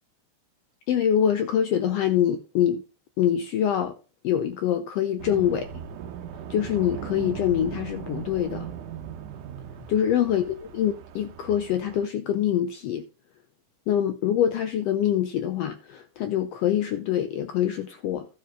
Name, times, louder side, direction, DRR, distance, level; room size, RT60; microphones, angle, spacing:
voice 1, 0.9-2.8 3.2-3.9 4.2-5.7 6.5-8.7 9.9-13.1 13.9-18.3, left 10 dB, 90° left, 1.4 m, -25 dB
sound 1, 5.2-12.1, right 8 dB, 85° right, 2.4 m, -38 dB
13.0 x 4.6 x 6.0 m
omnidirectional pair, 3.5 m